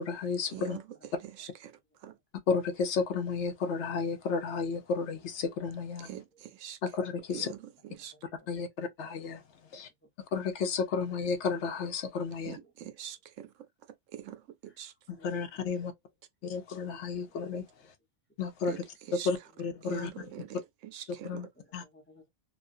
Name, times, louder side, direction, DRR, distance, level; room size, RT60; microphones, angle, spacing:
voice 1, 0.0-0.8 2.5-6.1 6.8-7.5 8.5-9.4 9.7-9.9 10.3-12.6 15.1-15.9 16.4-17.9 18.4-20.3 21.2-21.8, left 5 dB, 65° left, 0.8 m, -33 dB
voice 2, 1.0-1.4 6.3-6.4 8.1-8.7 12.6-12.7 14.7-14.8 15.1-15.7 19.4-19.6 20.0-20.2 21.6-22.3, left 1 dB, 15° left, 0.5 m, -60 dB
voice 3, 12.5-13.5 14.1-14.4 14.6-14.9 18.7-18.8 19.2-19.3 19.8-20.5 20.9-21.3, right 11 dB, 75° right, 0.9 m, -42 dB
2.5 x 2.2 x 2.4 m
omnidirectional pair, 1.4 m